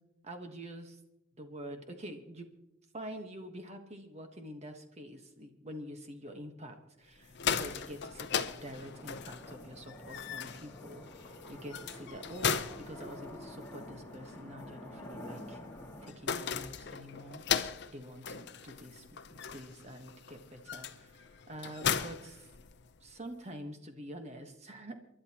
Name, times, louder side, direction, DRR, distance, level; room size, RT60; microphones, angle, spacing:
voice 1, 0.2-1.0 1.4-2.5 2.9-15.6 16.0-17.4 17.9-19.0 19.3-22.5 23.0-25.0, equal, 35° right, 5 dB, 1.3 m, -46 dB
sound 1, 7.2-23.1, left 7 dB, 55° left, 0.6 m, -38 dB
sound 2, 7.2-16.1, left 1 dB, 15° left, 2.0 m, -49 dB
28.5 x 11.5 x 3.0 m, 0.89 s
head